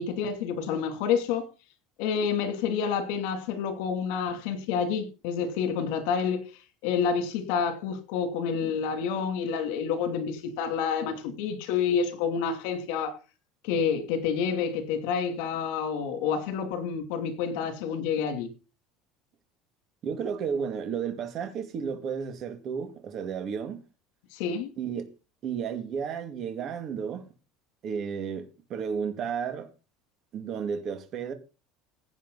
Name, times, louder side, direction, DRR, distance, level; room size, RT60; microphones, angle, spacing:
voice 1, 0.0-1.4 2.0-6.5 6.8-13.2 13.6-18.5 24.3-24.7, left 6 dB, 70° left, 2.9 m, -28 dB
voice 2, 20.0-23.8 24.8-25.1 25.4-27.2 27.8-29.7 30.3-31.3, right 7 dB, 40° right, 2.3 m, -32 dB
16.5 x 8.7 x 4.1 m
cardioid pair, 160°, 0 cm